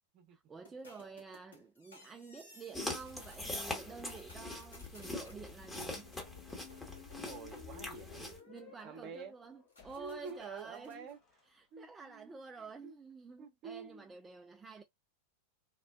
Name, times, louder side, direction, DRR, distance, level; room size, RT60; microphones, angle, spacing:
voice 1, 0.3-6.1 8.5-11.1 11.5-14.8, right 5 dB, 15° right, 0.3 m, -50 dB
sound 1, 0.7-3.5 3.8-5.4 6.1-9.0 9.7-11.2, left 1 dB, 70° left, 1.2 m, -59 dB
sound 2, 2.7-8.4, left 2 dB, 10° left, 1.0 m, -43 dB
Squeak, 5.5-11.4, left 9 dB, 35° left, 0.9 m, -57 dB
voice 2, 7.2-8.4 8.8-9.3 10.0-11.2 11.7-13.0 13.4-14.1, right 5 dB, 40° right, 0.8 m, -48 dB
3.6 x 2.1 x 2.3 m
figure-of-eight pair, 90°, 0 cm